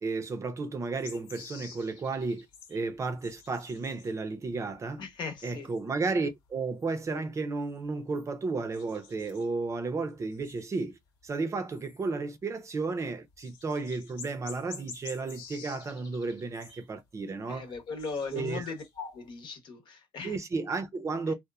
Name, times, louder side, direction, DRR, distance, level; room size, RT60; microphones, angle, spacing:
voice 1, 0.0-5.0 5.4-11.0 11.2-17.7 18.3-18.7 20.2-21.3, right 3 dB, 35° right, 0.6 m, -33 dB
sound 1, 1.0-4.2 4.5-6.1 6.3-6.5 6.8-8.3 8.7-9.7 10.2-11.3 11.7-12.1 13.0-13.1 13.3-16.9 17.3-19.3, left 6 dB, 85° left, 1.0 m, -50 dB
voice 2, 5.0-5.7 17.5-20.4 21.3-21.4, left 4 dB, 60° left, 1.0 m, -38 dB
2.9 x 2.1 x 2.3 m
supercardioid pair, 80°, 9 cm